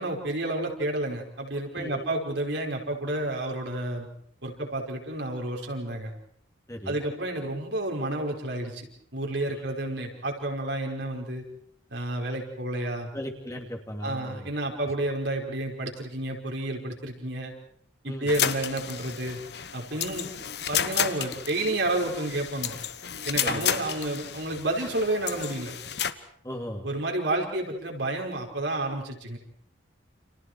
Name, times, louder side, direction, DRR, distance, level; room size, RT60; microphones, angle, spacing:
voice 1, 0.0-4.1 4.4-6.1 6.9-8.9 9.1-11.4 11.9-13.1 14.0-17.5 18.0-19.4 19.7-20.3 20.7-22.7 23.3-25.7 26.8-29.4, right 1 dB, 70° right, 1 dB, 5.3 m, -30 dB
voice 2, 1.7-2.1 6.7-7.0 9.5-9.6 13.1-14.5 18.1-18.3 23.4-23.7 26.4-26.8, equal, 15° left, 3 dB, 2.8 m, -37 dB
sound 1, 18.3-26.1, left 8 dB, 60° left, 1.3 m, -32 dB
30.0 x 28.5 x 4.8 m, 0.65 s
head